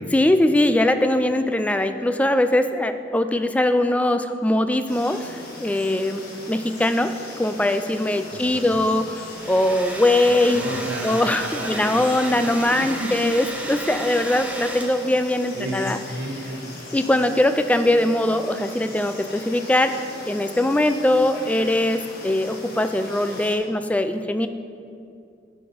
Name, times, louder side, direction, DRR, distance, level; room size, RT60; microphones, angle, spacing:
voice 1, 0.1-7.1 7.4-10.7 11.0-16.0 16.9-19.9 20.2-24.5, left 1 dB, 10° left, 9 dB, 0.3 m, -21 dB
sound 1, 4.9-23.6, left 1 dB, 60° left, 1.4 m, -39 dB
voice 2, 8.3-8.8 10.3-12.0 12.3-13.1 15.5-16.8, right 1 dB, 80° right, -1 dB, 0.9 m, -33 dB
Domestic sounds home sounds, 9.2-15.2, right 1 dB, 10° right, 0.7 m, -34 dB
11.5 x 4.2 x 5.1 m, 2.4 s
head